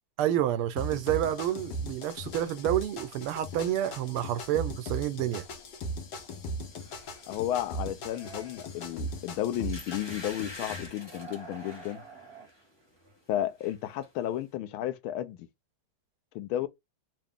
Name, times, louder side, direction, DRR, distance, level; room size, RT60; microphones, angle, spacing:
voice 1, 0.2-5.5, right 11 dB, 80° right, 1.5 m, -29 dB
sound 1, 0.8-10.9, right 1 dB, 60° left, 1.3 m, -38 dB
sound 2, 6.6-7.4 7.7-9.3 9.8-10.2 10.5-13.3 13.6-14.1, right 5 dB, 30° right, 1.4 m, -51 dB
voice 2, 7.3-12.0 13.3-15.5 16.3-16.7, left 12 dB, 80° left, 1.4 m, -33 dB
sound 3, 9.1-9.2 9.7-12.0 12.5-12.7 13.0-13.7 14.0-14.1, left 2 dB, 25° left, 0.5 m, -45 dB
3.8 x 2.5 x 3.4 m
omnidirectional pair, 2.4 m